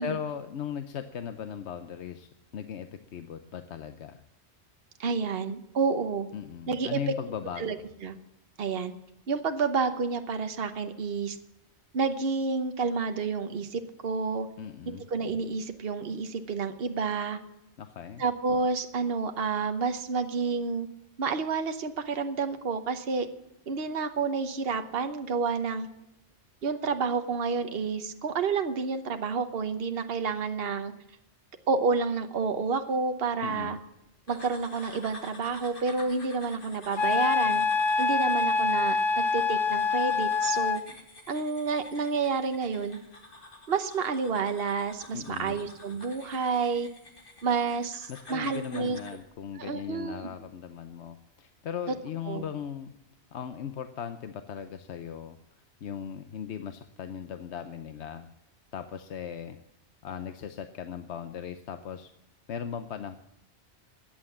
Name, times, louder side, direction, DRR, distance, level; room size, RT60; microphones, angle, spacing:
voice 1, 0.0-4.2 6.3-7.9 14.6-15.1 17.8-18.2 33.4-33.8 45.1-45.6 48.1-52.9 53.3-55.4 55.8-58.3 58.7-59.6 60.0-62.1 62.5-63.2, left 8 dB, 80° left, 9 dB, 1.0 m, -38 dB
voice 2, 5.0-6.3 6.7-7.0 7.6-7.8 8.0-8.2 8.6-8.9 9.3-11.4 11.9-14.5 14.9-17.4 18.2-20.9 21.2-23.3 23.7-25.9 26.6-30.9 31.7-33.8 34.3-37.7 38.0-40.8 41.3-43.0 43.7-46.9 47.4-49.0 49.6-50.3 52.3-52.4, right 5 dB, 60° right, 8 dB, 1.2 m, -29 dB
sound 1, 34.3-49.2, left 2 dB, 50° left, 2.2 m, -49 dB
Wind instrument woodwind instrument, 37.0-40.8, left 4 dB, 30° left, 0.6 m, -25 dB
14.5 x 9.1 x 7.3 m, 0.84 s
omnidirectional pair, 1.1 m